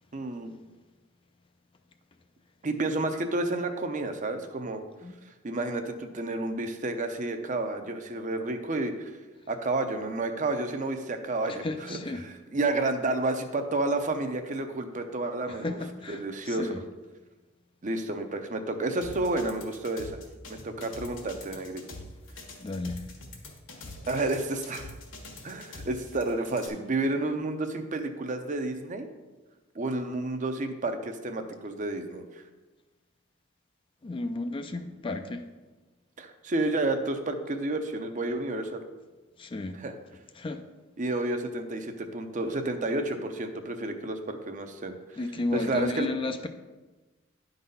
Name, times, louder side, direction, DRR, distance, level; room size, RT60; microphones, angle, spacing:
voice 1, 0.1-0.6 2.6-4.8 5.4-9.1 9.5-15.8 16.1-16.8 17.8-20.2 20.5-22.0 24.1-24.9 25.4-29.1 29.7-32.4 36.2-38.8 39.7-39.9 41.0-45.0 45.5-46.1, right 2 dB, 40° right, 6 dB, 0.6 m, -30 dB
voice 2, 11.6-12.2 15.6-16.8 22.6-23.0 34.0-35.4 39.4-39.8 40.4-40.6 45.2-46.5, left 2 dB, 25° left, 7 dB, 0.4 m, -33 dB
sound 1, 19.0-26.7, left 2 dB, 75° left, 1.6 m, -44 dB
10.0 x 4.0 x 5.4 m, 1.2 s
head